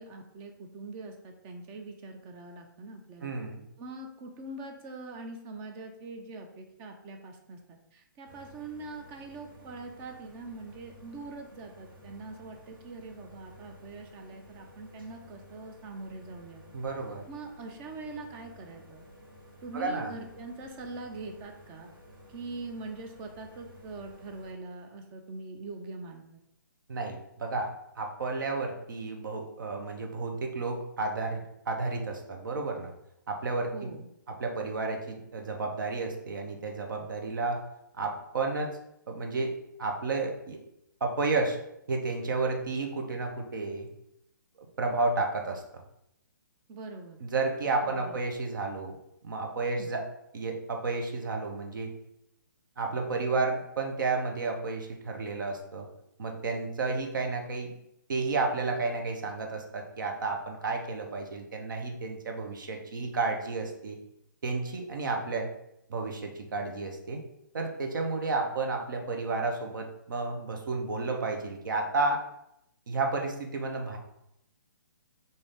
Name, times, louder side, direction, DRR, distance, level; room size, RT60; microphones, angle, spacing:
voice 1, 0.0-3.3 3.8-16.6 17.3-19.0 19.6-21.9 22.3-26.2 33.7-34.1 46.7-47.2 47.8-48.2 49.7-49.9, right 3 dB, 25° right, 4 dB, 0.5 m, -43 dB
voice 2, 3.2-3.6 16.7-17.2 19.7-20.1 26.9-32.9 33.3-33.9 34.4-37.6 37.9-38.7 39.1-39.5 39.8-40.6 41.0-41.6 41.9-43.9 44.8-45.8 47.2-49.0 49.2-50.0 50.3-51.9 52.8-55.9 56.2-57.7 58.1-64.0 64.4-65.5 65.9-67.2 67.5-72.2 72.9-74.0, right 3 dB, 70° right, 3 dB, 0.8 m, -31 dB
sound 1, 8.3-24.5, equal, 90° right, 1.1 m, -53 dB
3.8 x 2.7 x 3.2 m, 0.81 s
hypercardioid pair, 140°, 11 cm